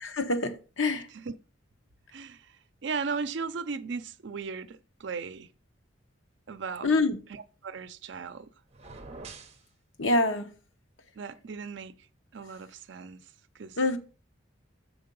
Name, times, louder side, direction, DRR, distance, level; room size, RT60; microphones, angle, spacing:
voice 1, 0.0-1.1 6.8-7.2 10.0-10.5 13.8-14.0, left 2 dB, 75° left, 0.9 m, -26 dB
voice 2, 2.1-2.6 2.8-5.5 6.5-6.9 7.3-8.5 11.2-11.9 12.3-13.2 13.5-13.8, right 5 dB, 65° right, 0.5 m, -37 dB
sound 1, 8.7-9.6, right 3 dB, 30° right, 0.7 m, -45 dB
6.6 x 4.3 x 5.3 m
head